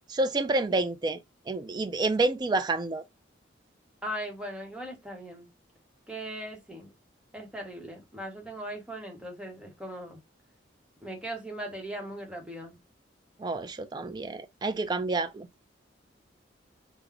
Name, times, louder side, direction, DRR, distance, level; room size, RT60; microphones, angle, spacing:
voice 1, 0.1-3.0 13.4-15.5, right 2 dB, 20° right, 0.3 m, -29 dB
voice 2, 4.0-5.5 6.1-6.9 7.3-10.2 11.0-12.7, right 1 dB, 5° right, 0.9 m, -39 dB
3.6 x 2.0 x 3.2 m
head